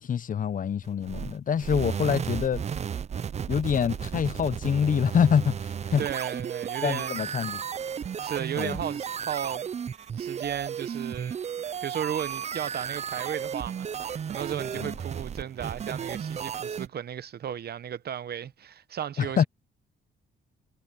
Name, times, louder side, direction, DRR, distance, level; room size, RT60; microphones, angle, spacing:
voice 1, 0.0-2.6 3.5-6.0 6.8-7.6 8.6-8.8 19.2-19.4, left 7 dB, 40° left, 0.7 m, -25 dB
sound 1, 0.8-16.9, right 7 dB, 35° right, 0.5 m, -34 dB
voice 2, 6.0-7.4 8.1-9.7 10.0-11.4 11.8-19.4, right 9 dB, 55° right, 0.9 m, -35 dB
cardioid pair, 90°, 20 cm